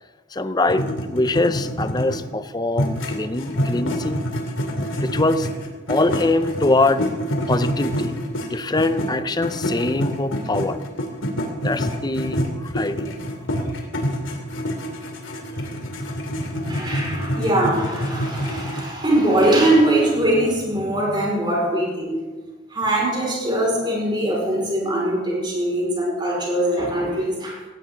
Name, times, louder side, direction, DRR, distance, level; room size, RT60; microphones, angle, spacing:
voice 1, 0.3-4.2 5.0-5.5 5.9-7.1 7.5-10.8 11.6-13.1, left 2 dB, 20° left, 12 dB, 0.6 m, -23 dB
sound 1, 0.7-2.3 2.7-9.1 9.4-18.8, equal, 85° left, 2.7 m, -26 dB
voice 2, 16.1-22.1 22.7-27.6, right 1 dB, 25° right, -2 dB, 5.1 m, -22 dB
18.0 x 17.0 x 3.8 m, 1.3 s
head